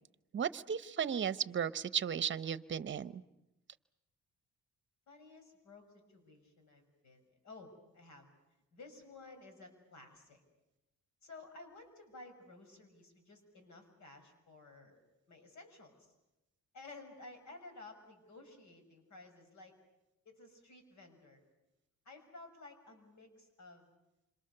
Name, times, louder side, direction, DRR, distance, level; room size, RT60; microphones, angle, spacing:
voice 1, 0.3-3.2, right 8 dB, 40° right, 16 dB, 0.9 m, -35 dB
voice 2, 5.1-8.3 8.7-10.4 11.2-15.0 15.3-16.1 16.7-19.7 20.2-21.4 22.0-23.9, left 3 dB, 70° left, 6 dB, 6.0 m, -54 dB
27.5 x 26.0 x 6.8 m, 0.94 s
cardioid pair, 90°, 30 cm